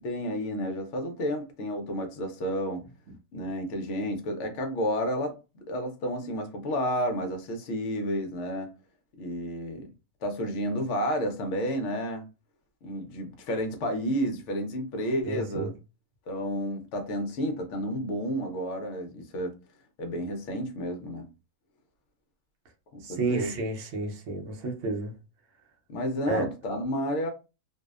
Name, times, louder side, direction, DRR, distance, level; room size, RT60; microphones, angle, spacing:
voice 1, 0.0-2.8 3.3-8.7 9.2-9.9 10.2-12.3 12.8-15.7 16.3-19.5 20.0-21.3 22.9-23.6 25.9-27.3, equal, 60° left, 0.8 m, -31 dB
voice 2, 15.2-15.7 23.0-25.2 26.3-26.5, right 3 dB, 65° right, 0.9 m, -31 dB
2.7 x 2.0 x 2.3 m
omnidirectional pair, 1.6 m